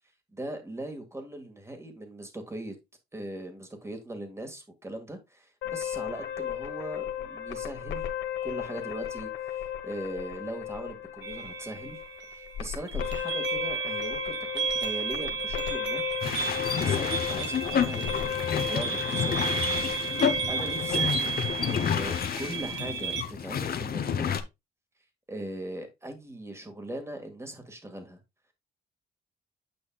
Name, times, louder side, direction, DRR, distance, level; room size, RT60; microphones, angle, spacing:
voice 1, 0.3-2.8 3.1-8.1 8.4-12.0 12.3-16.0 16.8-19.5 20.5-21.1 21.7-24.4 25.3-28.2, right 1 dB, 15° right, 2.0 m, -40 dB
sound 1, 5.6-22.7, left 10 dB, 80° left, 1.3 m, -36 dB
sound 2, 11.2-23.2, right 7 dB, 65° right, 1.1 m, -33 dB
sound 3, 16.2-24.4, left 8 dB, 50° left, 0.9 m, -30 dB
8.7 x 5.8 x 2.4 m
cardioid pair, 90°, 20 cm